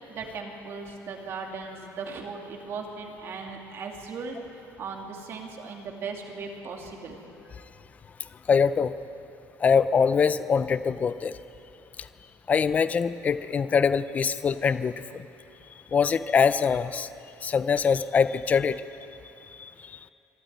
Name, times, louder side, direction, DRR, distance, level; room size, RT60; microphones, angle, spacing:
voice 1, 0.1-4.4 4.8-7.2, right 4 dB, 45° right, 1 dB, 2.5 m, -37 dB
voice 2, 8.5-9.0 9.6-11.4 12.0-12.1 12.5-15.2 15.9-17.1 17.4-18.8 19.6-20.0, left 6 dB, 25° left, 14 dB, 0.5 m, -23 dB
25.0 x 13.0 x 9.4 m, 2.8 s
cardioid pair, 165°, 6 cm